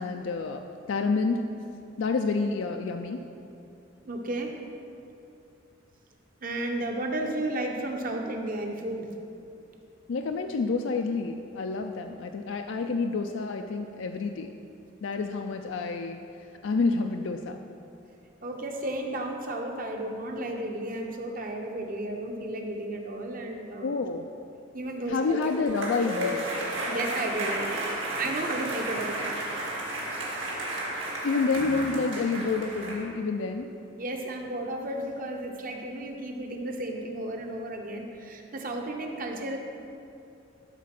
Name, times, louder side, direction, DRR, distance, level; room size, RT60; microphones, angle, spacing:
voice 1, 0.0-1.5 2.0-3.2 10.1-14.5 15.0-16.2 16.6-17.6 23.8-24.3 25.1-26.4 31.2-33.7, left 4 dB, 70° left, 4 dB, 0.4 m, -28 dB
voice 2, 4.0-4.6 6.4-9.1 18.4-23.9 24.7-25.4 26.9-27.9 28.2-29.3 29.8-30.2 34.0-39.6, right 1 dB, 45° right, 2 dB, 0.9 m, -33 dB
sound 1, 25.1-33.0, right 1 dB, 70° right, 2.0 m, -33 dB
12.0 x 4.1 x 5.9 m, 2.7 s
head